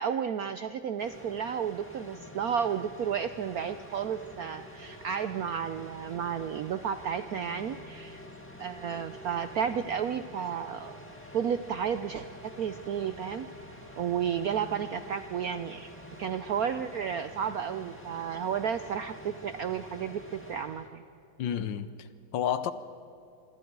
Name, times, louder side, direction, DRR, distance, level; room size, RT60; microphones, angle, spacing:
voice 1, 0.0-8.2 8.6-11.0 11.3-13.5 14.0-15.9 16.2-21.0, right 8 dB, 70° right, 0.8 m, -32 dB
sound 1, 1.0-20.9, equal, 5° left, 1.9 m, -47 dB
voice 2, 21.4-22.7, left 9 dB, 70° left, 1.4 m, -31 dB
26.5 x 25.0 x 4.7 m
omnidirectional pair, 2.2 m